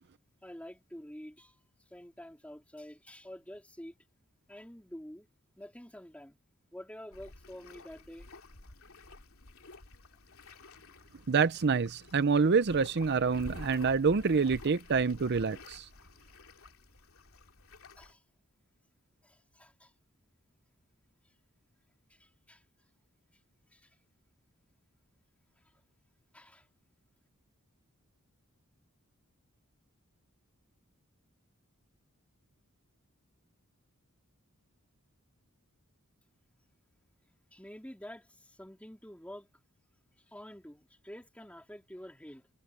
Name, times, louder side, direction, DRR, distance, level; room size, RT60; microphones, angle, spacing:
voice 1, 0.4-1.6 1.9-3.9 4.5-5.3 5.6-6.4 6.7-8.3 10.5-10.6 18.0-18.2 19.2-19.9 22.1-22.6 23.7-23.9 26.3-26.7 37.5-39.5 40.3-42.5, equal, 5° left, 3.5 m, -48 dB
sound 1, 7.1-18.1, left 2 dB, 75° left, 3.0 m, -51 dB
voice 2, 11.3-15.9, right 5 dB, 50° right, 0.6 m, -27 dB
head